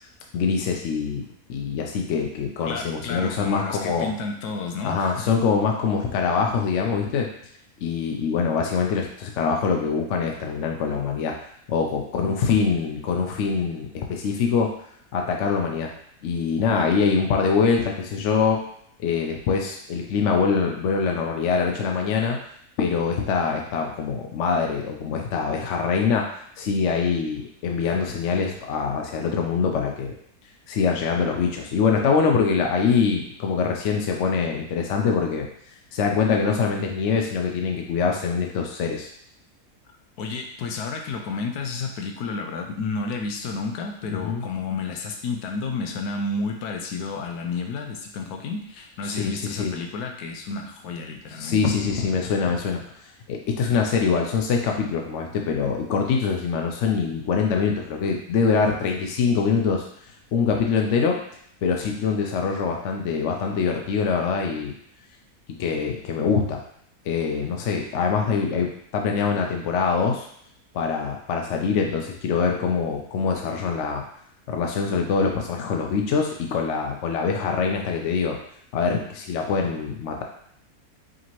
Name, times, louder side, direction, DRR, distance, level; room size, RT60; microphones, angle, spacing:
voice 1, 0.3-1.2 1.5-4.1 4.8-7.3 7.8-11.4 11.7-14.7 15.1-15.9 16.2-18.6 19.0-22.4 22.8-26.3 26.6-30.1 30.7-35.5 35.9-39.1 44.2-44.4 49.1-49.7 51.4-52.8 53.3-59.9 60.3-61.2 61.6-64.7 65.6-66.6 67.1-70.3 70.7-74.0 74.5-78.4 78.7-80.2, left 5 dB, 65° left, 1 dB, 0.7 m, -24 dB
voice 2, 2.7-5.3 40.2-51.6, left 4 dB, 90° left, 3 dB, 1.1 m, -31 dB
5.0 x 2.8 x 3.0 m, 0.68 s
omnidirectional pair, 1.6 m